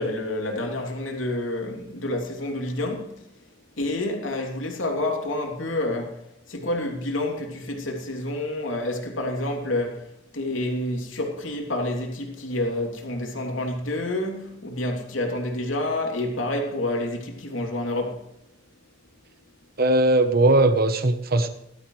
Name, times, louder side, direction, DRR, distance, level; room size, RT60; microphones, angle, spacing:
voice 1, 0.0-3.1 3.8-6.2 6.5-18.2, left 1 dB, 90° left, 3.0 m, -28 dB
voice 2, 19.8-21.5, right 2 dB, 50° right, 1.0 m, -19 dB
18.5 x 13.0 x 3.3 m
head